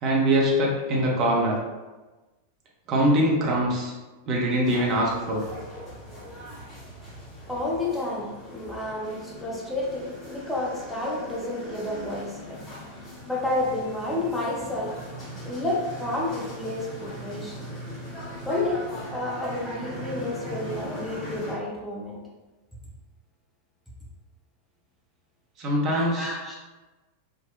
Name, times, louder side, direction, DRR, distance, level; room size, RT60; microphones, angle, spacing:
voice 1, 0.0-1.6 2.9-3.9 4.3-5.4 25.6-26.3, right 1 dB, 35° right, -3 dB, 0.7 m, -23 dB
sound 1, 4.6-21.6, equal, 25° left, 1.1 m, -40 dB
voice 2, 7.5-12.6 13.3-14.9 15.5-17.6 18.5-22.2 25.9-26.6, left 2 dB, 5° left, -5 dB, 0.7 m, -30 dB
3.6 x 2.1 x 2.3 m, 1.2 s
figure-of-eight pair, 90°, 0 cm